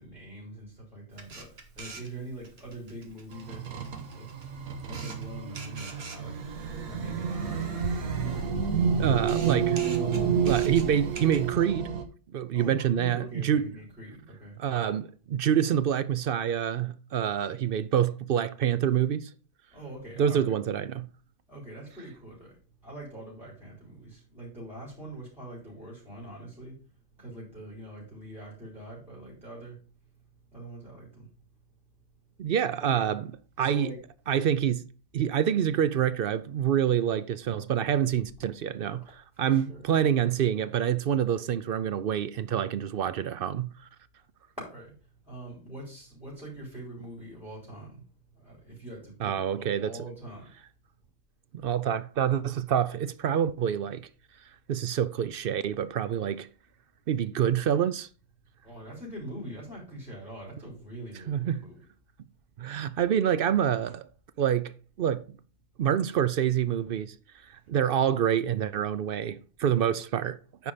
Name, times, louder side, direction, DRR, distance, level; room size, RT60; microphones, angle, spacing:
voice 1, 0.0-3.8 4.1-4.3 4.9-6.4 6.8-7.8 12.5-14.6 19.7-20.5 21.5-22.5 22.8-26.7 27.2-29.8 30.5-31.3 32.8-33.0 33.6-34.0 39.4-39.9 44.6-44.9 45.3-48.0 48.3-50.5 58.6-61.8, right 1 dB, 5° right, 4.1 m, -43 dB
Camera, 1.1-11.5, right 3 dB, 50° right, 1.7 m, -44 dB
sound 1, 3.3-12.0, right 7 dB, 90° right, 1.6 m, -29 dB
voice 2, 9.0-9.8 10.4-11.9 12.3-13.7 14.6-19.3 20.2-21.1 32.4-33.3 33.6-33.9 34.3-34.9 35.1-43.7 49.2-50.0 51.5-54.1 54.7-56.5 57.1-58.1 61.3-61.6 62.6-64.1 64.4-64.7 65.0-65.2 65.8-67.2 67.7-70.7, right 9 dB, 65° right, 0.6 m, -27 dB
9.6 x 4.8 x 5.0 m
omnidirectional pair, 1.4 m